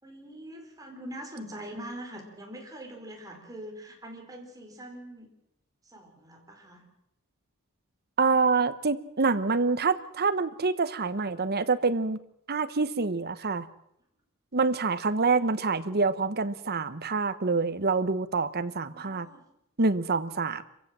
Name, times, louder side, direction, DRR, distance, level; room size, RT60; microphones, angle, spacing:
voice 1, 0.0-5.3 5.8-6.8 18.8-19.4, right 1 dB, 15° right, 1 dB, 4.7 m, -43 dB
voice 2, 8.2-12.2 12.5-13.7 14.5-19.3 19.8-20.6, right 4 dB, 45° right, 12 dB, 1.1 m, -26 dB
26.5 x 15.5 x 7.6 m, 0.79 s
head